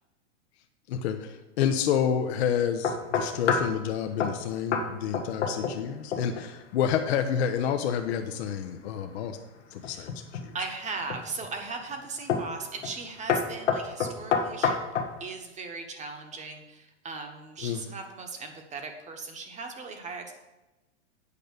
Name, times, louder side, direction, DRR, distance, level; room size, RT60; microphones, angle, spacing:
voice 1, 0.9-9.4 9.7-10.1 10.4-10.6 17.6-17.8, left 8 dB, 65° left, 5 dB, 0.9 m, -29 dB
sound 1, 2.8-3.8 4.2-4.4 4.7-4.9 5.1-5.8 6.1-6.5 9.8-10.5 11.1-11.5 12.3-12.5 12.8-13.0 13.3-15.1, left 6 dB, 85° left, 1.5 m, -27 dB
voice 2, 10.5-14.8 15.2-20.3, right 4 dB, 20° right, 4 dB, 1.2 m, -38 dB
8.5 x 5.3 x 6.6 m, 1.1 s
hypercardioid pair, 125°, 35 cm